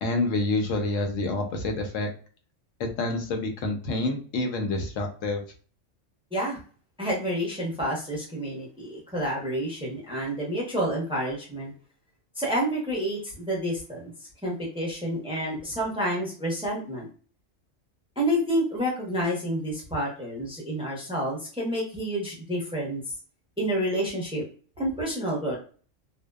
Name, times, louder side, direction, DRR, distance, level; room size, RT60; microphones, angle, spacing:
voice 1, 0.0-2.1 2.8-5.4, left 2 dB, 85° left, 4 dB, 1.0 m, -28 dB
voice 2, 7.0-11.7 12.4-14.1 14.4-17.1 18.2-23.0 23.6-24.4 24.8-25.6, equal, 5° right, -3 dB, 0.6 m, -29 dB
2.6 x 2.1 x 2.3 m, 0.41 s
omnidirectional pair, 1.3 m